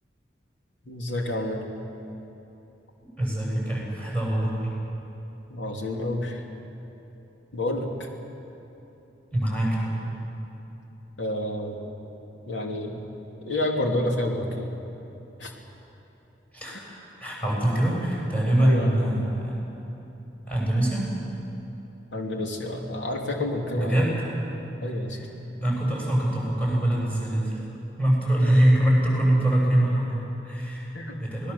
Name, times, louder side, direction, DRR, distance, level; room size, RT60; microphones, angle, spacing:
voice 1, 0.8-1.7 5.5-6.4 7.5-7.9 11.2-11.8 12.5-13.0 13.4-14.7 15.4-15.5 18.6-19.2 22.1-24.1 24.8-25.2 30.9-31.2, left 1 dB, 90° left, 1 dB, 3.0 m, -29 dB
voice 2, 3.2-4.7 9.3-10.0 16.5-19.6 20.5-21.1 23.7-24.2 25.1-25.2 25.6-27.6 28.0-30.9 31.2-31.5, right 1 dB, 10° left, -4 dB, 6.9 m, -24 dB
26.5 x 18.5 x 7.0 m, 3.0 s
head